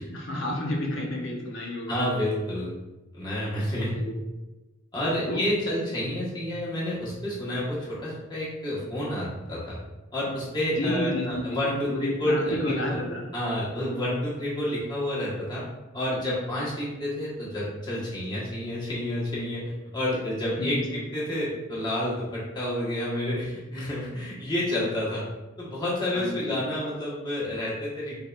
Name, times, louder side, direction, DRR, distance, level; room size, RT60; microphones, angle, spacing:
voice 1, 0.0-2.0 3.9-4.1 5.3-5.4 5.7-5.8 10.7-13.3 20.6-21.0 26.1-26.6, left 1 dB, 70° left, -1 dB, 0.8 m, -30 dB
voice 2, 1.9-2.7 3.1-4.0 4.9-9.8 10.1-12.6 12.9-13.0 13.3-15.6 15.9-25.3 25.6-28.2, left 1 dB, 20° left, -8 dB, 1.3 m, -29 dB
4.6 x 3.2 x 2.4 m, 1.1 s
head